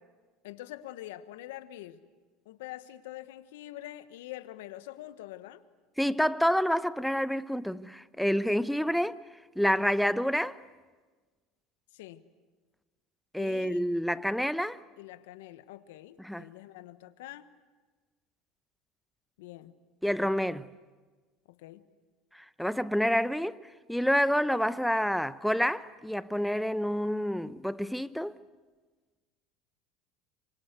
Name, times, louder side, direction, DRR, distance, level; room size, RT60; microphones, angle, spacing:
voice 1, 0.4-2.0 2.4-5.6 11.9-12.2 13.4-13.8 15.0-17.5 19.4-19.7 21.5-21.9, left 14 dB, 80° left, 1.2 m, -45 dB
voice 2, 6.0-9.2 9.6-10.6 13.3-14.8 16.2-16.5 20.0-20.7 22.3-28.3, equal, ahead, 0.9 m, -28 dB
27.0 x 25.0 x 8.2 m
hypercardioid pair, 85°, 0 cm